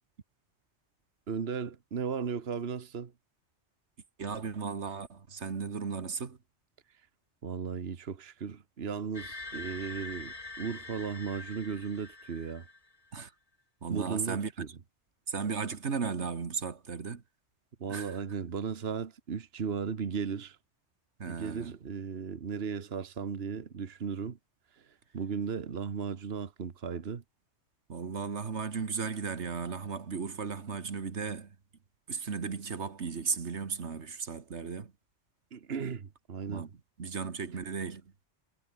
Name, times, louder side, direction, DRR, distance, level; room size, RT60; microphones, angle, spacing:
voice 1, 1.3-3.1 6.9-7.0 7.4-12.7 13.9-14.7 17.8-20.6 21.3-24.4 24.7-27.2 35.5-36.7, right 6 dB, 65° right, 1.5 m, -36 dB
voice 2, 4.2-6.4 13.1-13.3 13.8-14.7 15.3-17.2 17.9-18.2 21.2-21.8 27.9-31.5 32.1-34.9 36.5-36.7 37.0-38.1, right 5 dB, 80° right, 1.9 m, -35 dB
sound 1, 9.1-13.0, left 3 dB, 35° left, 2.0 m, -44 dB
omnidirectional pair, 1.1 m